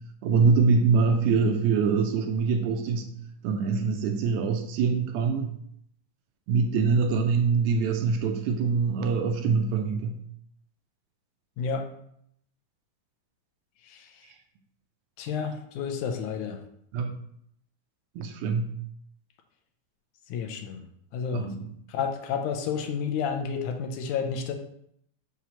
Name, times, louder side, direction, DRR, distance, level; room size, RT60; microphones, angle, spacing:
voice 1, 0.2-3.1 3.4-5.5 6.5-10.2 16.9-17.1 18.2-18.7 21.3-21.7, right 5 dB, 80° right, 5 dB, 1.9 m, -24 dB
voice 2, 13.8-14.3 15.2-16.6 20.3-20.8 21.1-21.5 21.9-24.5, left 6 dB, 80° left, 5 dB, 2.1 m, -31 dB
6.0 x 3.0 x 5.6 m, 0.70 s
omnidirectional pair, 3.5 m